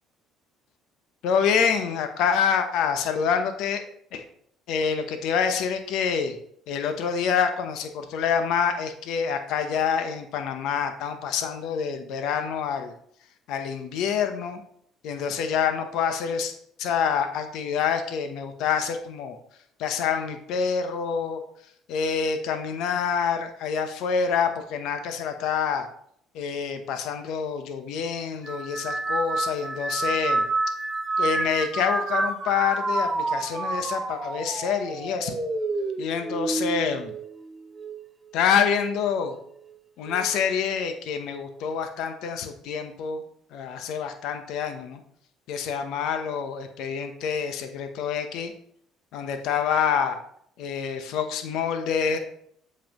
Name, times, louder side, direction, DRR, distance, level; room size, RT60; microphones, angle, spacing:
voice 1, 1.2-3.8 4.1-4.2 4.7-6.4 6.7-12.9 13.5-14.6 15.0-16.5 16.8-19.4 19.8-21.4 21.9-25.9 26.3-30.4 31.2-35.4 36.0-37.1 38.3-39.4 40.0-43.2 43.5-45.0 45.5-48.5 49.1-50.2 50.6-52.2, left 7 dB, 75° left, 7 dB, 0.9 m, -27 dB
sound 1, 28.4-38.0 38.5-39.1 40.0-40.4, right 2 dB, 20° right, 0.8 m, -29 dB
7.5 x 5.4 x 3.0 m, 0.66 s
supercardioid pair, 85°, 0 cm